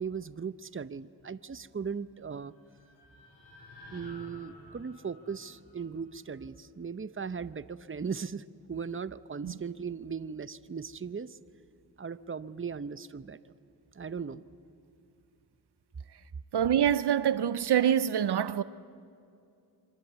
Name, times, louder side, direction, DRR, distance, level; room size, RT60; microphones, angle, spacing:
voice 1, 0.0-2.5 3.9-8.4 8.7-11.4 12.0-13.5 13.9-14.4, right 6 dB, 30° right, 0.8 m, -38 dB
sound 1, 2.2-6.4, left 2 dB, 75° left, 6.4 m, -53 dB
voice 2, 16.5-18.6, right 9 dB, 75° right, 0.7 m, -25 dB
26.5 x 24.0 x 8.2 m
cardioid pair, 50°, 40 cm